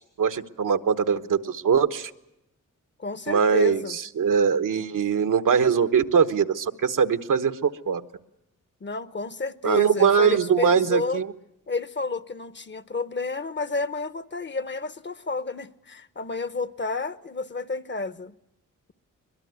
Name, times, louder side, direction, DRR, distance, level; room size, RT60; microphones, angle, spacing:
voice 1, 0.2-2.1 3.3-8.0 9.6-11.3, right 6 dB, 75° right, 1.2 m, -22 dB
voice 2, 3.0-4.0 8.8-11.2 11.7-18.3, left 4 dB, 35° left, 0.9 m, -31 dB
22.5 x 22.0 x 9.4 m
cardioid pair, 75°, 32 cm